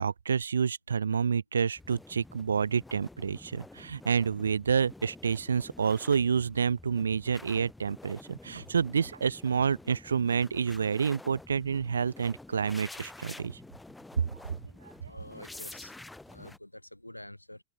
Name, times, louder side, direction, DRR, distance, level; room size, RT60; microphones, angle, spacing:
voice 1, 0.0-13.6, right 6 dB, 70° right, 2.1 m, -29 dB
sound 1, 1.8-16.6, left 2 dB, 5° left, 4.9 m, -49 dB
voice 2, 15.0-16.0 16.3-17.6, left 1 dB, 85° left, 7.9 m, -47 dB
figure-of-eight pair, 90°, 0 cm